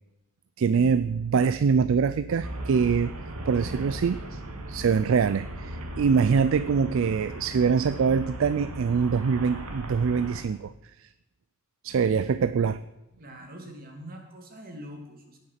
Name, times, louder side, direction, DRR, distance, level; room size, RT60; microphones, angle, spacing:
voice 1, 0.6-3.1 3.5-4.4 4.7-10.7 11.0-11.1 11.8-12.8, right 6 dB, 60° right, 14 dB, 0.4 m, -24 dB
Traffic noise roadway noise, 2.4-10.4, right 1 dB, 85° right, 1.8 m, -38 dB
voice 2, 13.2-15.4, equal, 40° right, 2 dB, 2.4 m, -43 dB
18.0 x 6.7 x 5.8 m, 0.96 s
head